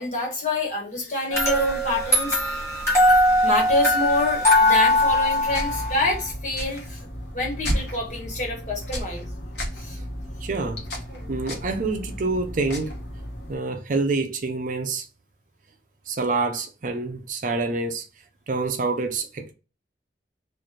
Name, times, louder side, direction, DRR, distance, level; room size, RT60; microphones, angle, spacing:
voice 1, 0.0-2.4 3.4-7.0 7.3-9.3 9.8-10.0 11.1-11.4, left 2 dB, 40° left, 1.4 m, -27 dB
sound 1, 1.3-6.3, left 1 dB, 15° left, 1.2 m, -20 dB
sound 2, 5.5-13.5, equal, 70° left, 1.1 m, -33 dB
voice 2, 10.4-10.8 11.3-12.9 13.5-15.1 16.1-18.1 18.5-19.5, right 3 dB, 45° right, 0.5 m, -27 dB
3.2 x 2.4 x 4.1 m
head